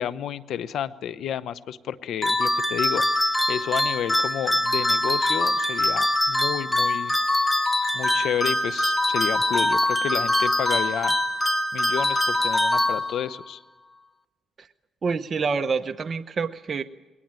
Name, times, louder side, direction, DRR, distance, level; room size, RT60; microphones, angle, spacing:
voice 1, 0.0-3.1 3.5-7.2 7.9-11.2 11.7-13.6, left 9 dB, 75° left, 16 dB, 0.9 m, -31 dB
sound 1, 2.2-13.4, left 1 dB, 15° left, 1.7 m, -23 dB
voice 2, 15.0-16.8, right 5 dB, 40° right, 8 dB, 0.9 m, -27 dB
21.5 x 18.5 x 9.1 m, 1.2 s
cardioid pair, 90°, 0 cm